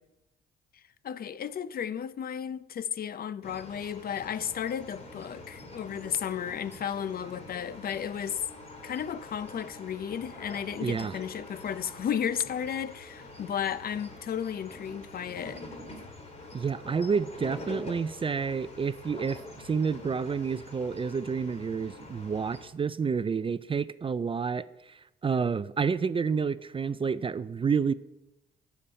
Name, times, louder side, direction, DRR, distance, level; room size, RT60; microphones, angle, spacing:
voice 1, 1.0-8.4 8.8-15.6, left 8 dB, 50° left, 0.5 m, -34 dB
sound 1, 3.4-22.7, left 2 dB, 35° left, 2.6 m, -46 dB
voice 2, 10.8-11.2 16.5-27.9, right 5 dB, 25° right, 0.4 m, -29 dB
15.0 x 7.1 x 4.4 m
cardioid pair, 90°, 20 cm